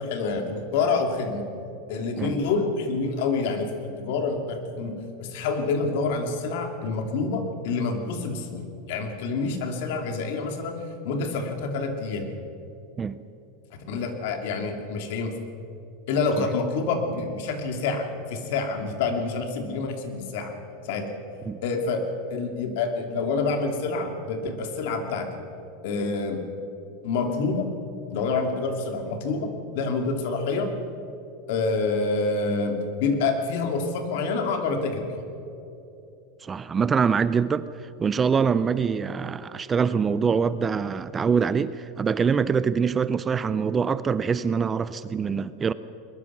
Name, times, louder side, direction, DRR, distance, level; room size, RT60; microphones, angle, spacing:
voice 1, 0.0-1.5 1.9-10.7 11.0-12.3 13.7-15.4 16.1-20.5 20.8-21.1 21.6-22.0 22.3-25.3 25.8-26.4 27.0-27.7 28.1-30.7 31.5-35.1, left 4 dB, 60° left, 5 dB, 2.6 m, -27 dB
voice 2, 36.4-45.7, right 6 dB, 15° right, 15 dB, 0.4 m, -24 dB
21.5 x 21.0 x 6.1 m, 2.9 s
supercardioid pair, 170°, 0 cm